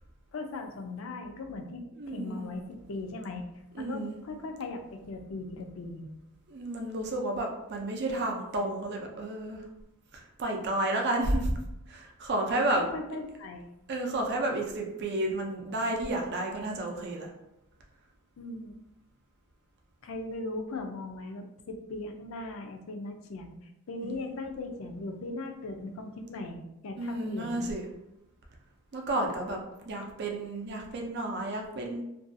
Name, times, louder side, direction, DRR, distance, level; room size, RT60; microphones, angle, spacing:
voice 1, 0.3-3.5 3.8-6.1 12.5-13.7 18.4-18.8 20.0-27.7, left 2 dB, 65° left, 5 dB, 0.4 m, -39 dB
voice 2, 2.0-2.4 3.7-4.1 6.5-9.6 10.1-11.5 11.9-12.8 13.9-17.3 24.0-24.2 27.0-27.9 28.9-29.6 29.8-32.0, right 1 dB, 50° right, 1 dB, 0.4 m, -31 dB
2.6 x 2.3 x 2.5 m, 0.88 s
head